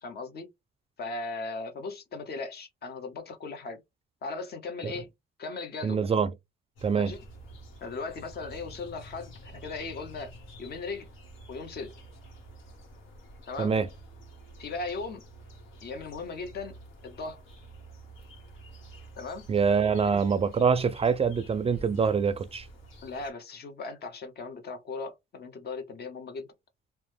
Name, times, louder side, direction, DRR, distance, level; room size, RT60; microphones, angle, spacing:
voice 1, 0.0-0.5 1.0-3.8 4.2-5.1 5.4-6.0 6.9-7.2 7.8-10.3 10.6-11.1 11.5-11.9 13.5-13.7 14.6-15.2 15.8-16.7 17.0-17.4 19.2-19.4 20.0-20.2 23.0-26.5, left 3 dB, 55° left, 0.9 m, -38 dB
voice 2, 5.8-6.3 6.8-7.1 13.6-13.9 19.5-22.7, right 6 dB, 30° right, 0.4 m, -25 dB
sound 1, 6.7-23.3, right 1 dB, 80° left, 1.2 m, -49 dB
2.9 x 2.1 x 3.3 m
cardioid pair, 90°, 20 cm